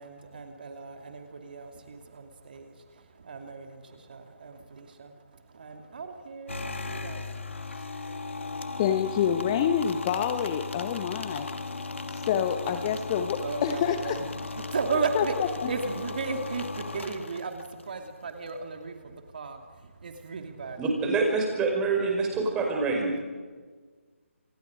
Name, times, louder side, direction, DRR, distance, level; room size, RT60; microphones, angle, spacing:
voice 1, 0.0-8.8 13.4-15.3 15.7-20.8, right 4 dB, 40° right, 4 dB, 2.6 m, -36 dB
sound 1, 6.5-17.8, left 3 dB, 60° left, 2.6 m, -37 dB
voice 2, 8.8-11.5 12.1-14.2 15.1-15.3 15.6-15.7, left 9 dB, 20° left, 9 dB, 0.9 m, -27 dB
voice 3, 20.8-23.2, right 3 dB, 10° right, 1 dB, 5.2 m, -26 dB
29.5 x 28.5 x 5.1 m, 1.5 s
figure-of-eight pair, 150°, 7 cm